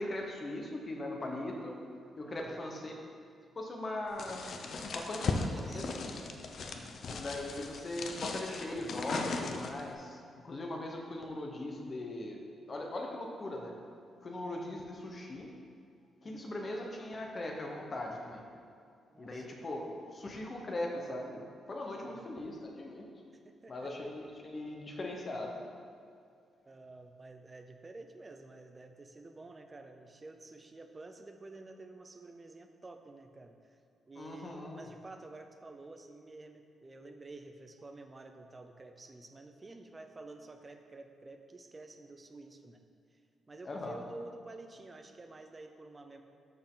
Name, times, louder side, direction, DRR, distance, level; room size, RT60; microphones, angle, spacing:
voice 1, 0.0-1.8 2.2-3.0 3.5-4.4 4.9-5.8 7.0-10.2 10.4-12.4 12.7-13.7 14.2-15.5 16.2-18.4 19.2-23.0 23.7-25.5 34.2-34.9 43.6-44.0, left 1 dB, 30° left, 1 dB, 1.0 m, -39 dB
voice 2, 2.2-2.8 5.0-7.0 16.2-16.5 19.1-19.5 22.0-22.4 23.3-23.9 26.7-33.8 34.1-42.8 43.1-43.2 43.5-46.2, right 2 dB, 20° right, 6 dB, 0.5 m, -51 dB
sound 1, 4.2-9.9, left 4 dB, 50° left, 0.6 m, -38 dB
13.0 x 4.6 x 3.8 m, 2.4 s
cardioid pair, 155°, 0 cm